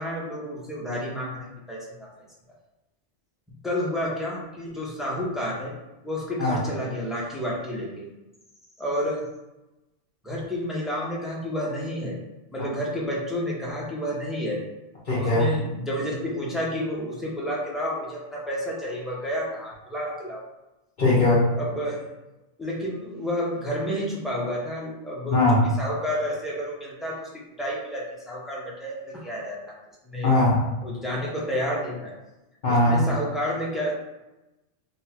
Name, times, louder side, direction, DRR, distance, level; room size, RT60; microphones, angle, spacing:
voice 1, 0.0-2.1 3.6-5.7 6.0-8.1 8.8-9.2 10.2-12.2 12.5-14.6 15.2-20.4 21.6-22.0 22.6-25.4 25.8-29.7 30.0-30.3 30.8-32.1 32.7-33.9, equal, ahead, -5 dB, 0.9 m, -30 dB
voice 2, 15.1-15.5 21.0-21.5 25.3-25.7 30.2-30.7 32.6-33.1, left 2 dB, 45° left, -9 dB, 1.1 m, -20 dB
3.9 x 2.5 x 4.4 m, 0.99 s
omnidirectional pair, 1.2 m